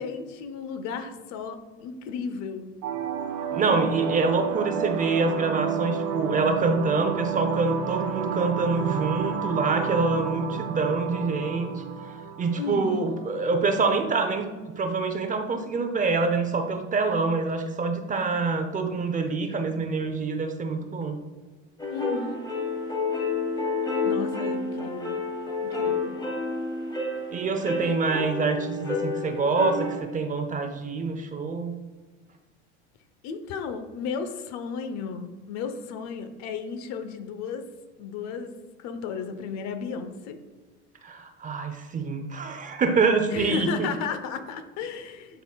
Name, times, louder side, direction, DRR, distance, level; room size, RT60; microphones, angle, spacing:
voice 1, 0.0-2.6 12.5-13.2 21.9-22.4 24.0-25.2 25.6-26.2 33.2-37.7 38.0-40.4 43.3-45.4, left 5 dB, 55° left, 9 dB, 0.8 m, -34 dB
sound 1, 2.8-13.8, right 7 dB, 55° right, 0.8 m, -31 dB
voice 2, 3.5-11.8 12.4-21.2 27.3-31.8 41.0-43.9, right 4 dB, 25° right, 7 dB, 0.6 m, -26 dB
sound 2, 21.8-30.0, left 3 dB, 15° left, 1.5 m, -29 dB
11.5 x 4.0 x 2.3 m, 1.4 s
supercardioid pair, 125°, 32 cm